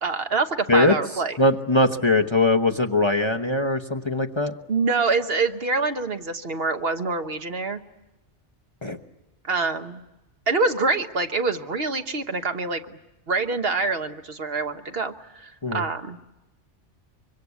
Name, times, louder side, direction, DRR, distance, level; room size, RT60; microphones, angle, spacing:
voice 1, 0.0-1.4 4.7-7.8 9.4-10.0 10.5-13.0 13.3-16.2, right 3 dB, 55° right, 7 dB, 1.3 m, -25 dB
voice 2, 1.4-4.5 8.8-9.0 15.6-15.8, left 2 dB, 25° left, 3 dB, 1.0 m, -21 dB
25.0 x 24.0 x 8.3 m, 1.0 s
omnidirectional pair, 1.2 m